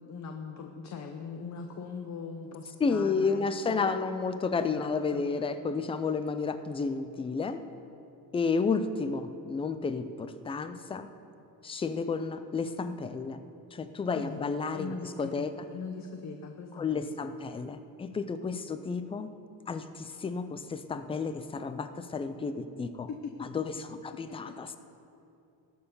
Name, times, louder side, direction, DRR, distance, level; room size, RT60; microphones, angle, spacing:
voice 1, 0.1-3.9 4.5-5.2 14.1-15.5 15.7-17.2 23.1-23.3, left 5 dB, 40° left, 4 dB, 0.8 m, -41 dB
voice 2, 2.8-7.6 8.3-11.1 11.6-13.4 13.7-15.5 16.8-19.3 19.7-23.1 23.4-24.8, left 4 dB, 15° left, 11 dB, 0.3 m, -31 dB
19.0 x 6.9 x 5.4 m, 2.7 s
cardioid pair, 145°, 44 cm